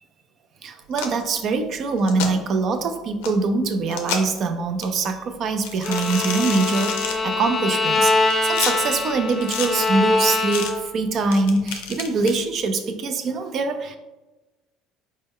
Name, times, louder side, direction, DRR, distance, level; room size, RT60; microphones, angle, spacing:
voice 1, 0.6-8.1 8.4-14.0, right 3 dB, 50° right, 7 dB, 0.4 m, -23 dB
sound 1, 0.9-1.2 2.0-2.3 3.2-3.3 3.9-4.4 4.8-4.9 5.6-7.2 7.9-8.7 9.3-9.7 10.5-10.7 11.3-12.4, left 6 dB, 90° left, 0.5 m, -29 dB
Bowed string instrument, 5.8-11.0, left 3 dB, 30° left, 0.5 m, -23 dB
4.2 x 2.1 x 3.6 m, 1.1 s
supercardioid pair, 105°, 0 cm